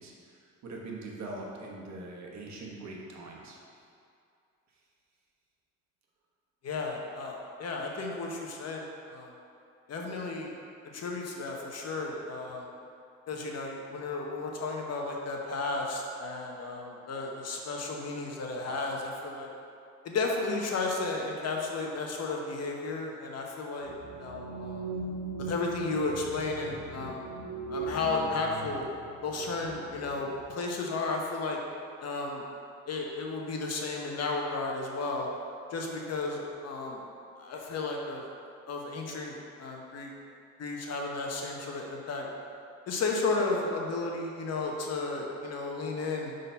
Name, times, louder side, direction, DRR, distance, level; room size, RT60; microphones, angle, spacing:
voice 1, 0.0-3.6, right 2 dB, 65° right, -1 dB, 1.2 m, -42 dB
voice 2, 6.6-8.8 9.1-9.3 9.9-10.5 10.9-12.7 13.3-19.5 20.0-23.9 24.2-24.8 25.4-27.2 27.7-28.8 29.2-31.6 32.0-32.4 32.9-35.3 35.7-37.0 37.4-38.2 38.7-40.1 40.6-42.3 42.9-46.3, left 3 dB, 55° left, 0 dB, 1.0 m, -33 dB
sound 1, 23.8-30.2, right 3 dB, 40° right, 1.2 m, -40 dB
5.5 x 3.9 x 5.6 m, 2.5 s
cardioid pair, 90°, 30 cm